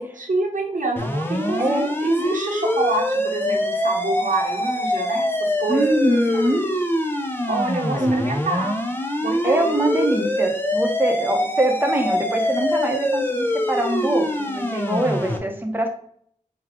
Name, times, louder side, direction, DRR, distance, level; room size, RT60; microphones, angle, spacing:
voice 1, 0.2-5.9 6.3-6.4 7.5-8.8 9.2-9.7, right 2 dB, 70° right, -1 dB, 1.1 m, -27 dB
sound 1, 1.0-15.4, left 1 dB, 15° left, 0.6 m, -24 dB
voice 2, 1.6-1.9 5.7-6.6 8.0-8.2 9.4-15.9, right 1 dB, 15° right, 3 dB, 0.9 m, -23 dB
4.6 x 2.3 x 3.6 m, 0.63 s
wide cardioid pair, 50°, 14 cm